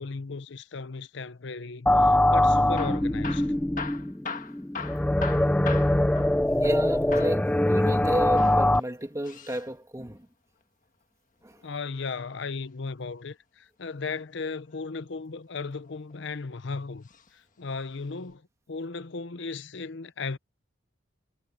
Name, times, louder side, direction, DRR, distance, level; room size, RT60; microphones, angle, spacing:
voice 1, 0.0-3.5 11.6-18.4 18.7-20.4, left 4 dB, 65° left, 0.7 m, -36 dB
sound 1, 1.9-8.8, left 1 dB, 5° left, 0.4 m, -23 dB
Hammer / Drill, 2.6-6.8 7.1-7.4 8.2-9.7 11.4-12.7 14.4-14.8 15.5-16.4 17.1-17.3 17.6-17.7 18.3-18.4, left 5 dB, 45° left, 1.6 m, -40 dB
voice 2, 6.6-10.3 11.4-11.6, right 1 dB, 15° right, 2.4 m, -32 dB
head